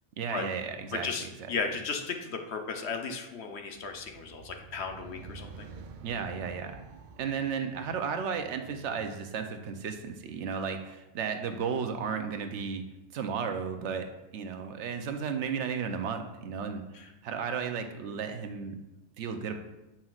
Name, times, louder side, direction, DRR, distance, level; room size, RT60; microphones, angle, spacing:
voice 1, 0.2-1.5 6.0-6.8 7.2-12.8 13.1-14.1 14.3-16.8 17.2-18.8 19.2-19.6, right 6 dB, 85° right, 6 dB, 1.0 m, -34 dB
voice 2, 0.9-5.7 16.9-17.1, left 5 dB, 70° left, 4 dB, 1.0 m, -35 dB
sound 1, 3.6-10.1, right 5 dB, 60° right, 0.5 m, -50 dB
7.6 x 5.6 x 2.4 m, 0.98 s
omnidirectional pair, 1.2 m